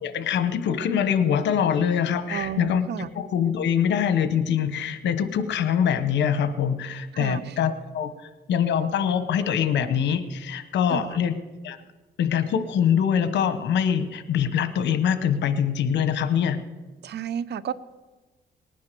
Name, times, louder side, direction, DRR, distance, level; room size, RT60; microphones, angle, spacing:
voice 1, 0.0-2.8 3.1-8.1 8.5-11.4 11.6-11.8 12.2-16.6, left 8 dB, 90° left, 12 dB, 1.1 m, -24 dB
voice 2, 2.3-3.1 7.1-7.6 10.9-11.2 17.0-17.7, right 9 dB, 70° right, 17 dB, 0.7 m, -32 dB
19.5 x 9.4 x 6.8 m, 1.2 s
cardioid pair, 115°, 18 cm